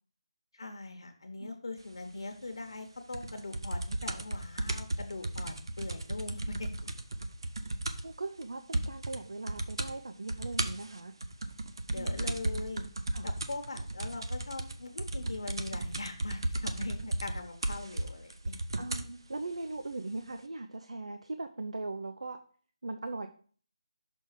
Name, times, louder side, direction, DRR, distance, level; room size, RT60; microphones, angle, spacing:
voice 1, 0.5-6.9 11.9-12.8 13.2-18.5, left 2 dB, 55° left, 5 dB, 1.0 m, -41 dB
sound 1, 3.1-8.2 8.4-8.5 8.7-9.2 9.5-9.9 10.3-19.1 19.9-20.0, right 2 dB, 50° right, 0.6 m, -35 dB
voice 2, 8.0-11.1 11.9-12.2 13.1-13.3 18.8-22.4 22.8-23.3, right 2 dB, 90° right, 8 dB, 0.7 m, -39 dB
6.3 x 3.5 x 5.7 m, 0.44 s
figure-of-eight pair, 180°, 3 cm